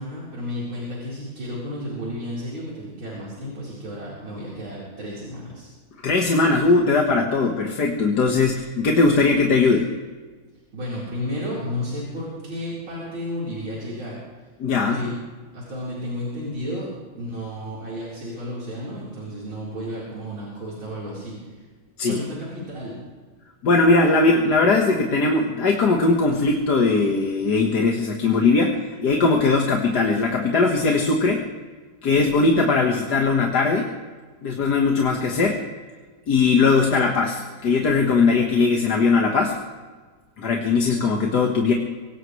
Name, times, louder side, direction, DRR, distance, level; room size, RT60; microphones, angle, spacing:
voice 1, 0.0-5.7 10.7-14.2 14.9-15.2 15.5-21.6 22.0-23.0, left 1 dB, 80° right, -7 dB, 5.0 m, -32 dB
voice 2, 6.0-9.9 14.6-15.0 22.0-22.2 23.6-31.4 32.0-33.9 34.4-35.6 36.3-39.6 40.4-41.7, left 3 dB, 55° left, 1 dB, 1.9 m, -19 dB
23.5 x 19.0 x 3.2 m, 1.4 s
omnidirectional pair, 2.2 m